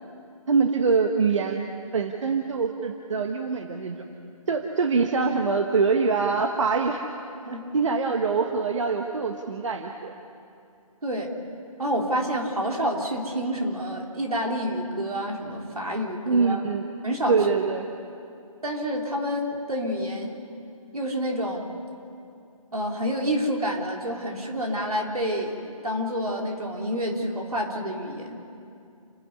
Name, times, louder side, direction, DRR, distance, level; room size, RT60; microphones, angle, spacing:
voice 1, 0.5-1.7 1.9-4.0 4.5-7.0 7.7-10.1 16.3-16.8 17.3-17.8, right 4 dB, 55° right, 4 dB, 1.3 m, -24 dB
voice 2, 11.0-11.3 11.8-16.6 17.0-17.4 18.6-20.4 20.9-21.7 22.7-28.4, equal, 85° right, 0 dB, 3.7 m, -28 dB
29.0 x 10.5 x 9.6 m, 2.5 s
figure-of-eight pair, 155°, 18 cm